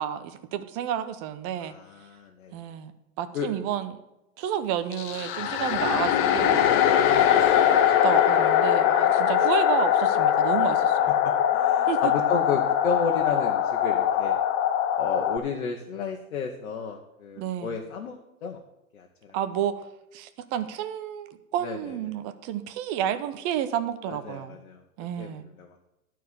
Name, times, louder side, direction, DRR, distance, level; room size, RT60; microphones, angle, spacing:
voice 1, 0.0-1.7 2.5-2.9 3.2-4.0 4.4-6.6 7.3-11.2 11.9-12.1 17.4-17.8 19.3-19.7 20.1-24.6 25.0-25.4, right 10 dB, 35° right, 11 dB, 0.9 m, -31 dB
voice 2, 1.6-2.5 3.3-3.5 6.8-7.4 11.5-14.4 14.9-18.6 18.9-19.4 21.6-22.0 24.1-24.8 25.2-25.8, left 5 dB, 65° left, 2 dB, 1.4 m, -33 dB
sound 1, 4.9-15.4, left 10 dB, 30° left, 0.7 m, -22 dB
12.0 x 4.6 x 8.0 m, 0.93 s
hypercardioid pair, 120°, 42 cm